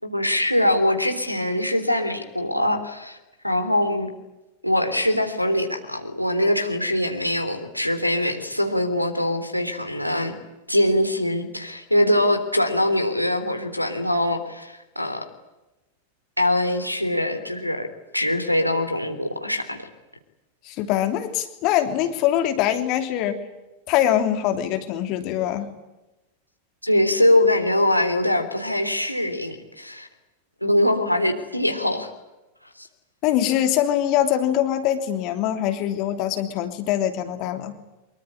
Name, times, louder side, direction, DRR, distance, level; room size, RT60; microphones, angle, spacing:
voice 1, 0.0-3.2 3.4-4.1 4.6-10.3 10.7-15.2 16.4-17.9 18.1-19.9 26.8-30.1 30.6-32.1 32.8-32.9, left 1 dB, 90° left, 5 dB, 3.4 m, -23 dB
voice 2, 20.6-23.4 23.9-25.7 33.2-37.7, left 11 dB, 40° left, 7 dB, 3.0 m, -23 dB
25.0 x 23.5 x 9.9 m, 1.0 s
figure-of-eight pair, 90°, 0 cm